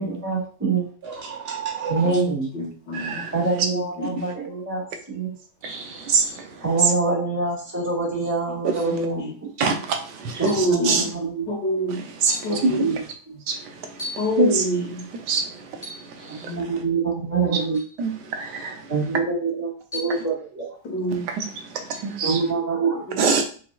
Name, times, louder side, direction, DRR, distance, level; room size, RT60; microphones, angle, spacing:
voice 1, 0.0-0.9 1.9-2.5 3.3-5.3 6.6-9.5 10.2-11.5 12.5-13.4 16.3-17.8 18.9-20.8 22.2-23.4, right 4 dB, 10° right, 1.5 m, -26 dB
voice 2, 1.0-2.1 5.6-6.4 16.2-16.5, right 6 dB, 60° right, 0.6 m, -33 dB
voice 3, 2.0-3.2 3.7-4.2 8.9-9.3 10.4-11.1 11.5-12.0 12.4-12.9 14.2-15.0 16.4-16.6 20.8-21.2 23.1-23.2, equal, 85° left, 2.1 m, -26 dB
voice 4, 2.9-3.3 5.6-5.7 6.0-6.5 8.6-8.7 9.6-11.0 11.9-12.8 13.5-14.6 15.3-15.8 16.1-16.5 17.5-17.6 18.0-18.9 21.1-22.4 23.2-23.4, right 4 dB, 80° right, 1.4 m, -25 dB
sound 1, 8.7-9.0 10.5-10.8 11.6-11.7 12.3-12.6 14.0-14.4 15.8-16.2 17.7-18.0 19.9-20.3 21.9-22.2, left 2 dB, 20° left, 1.1 m, -37 dB
4.9 x 3.8 x 2.3 m
omnidirectional pair, 1.8 m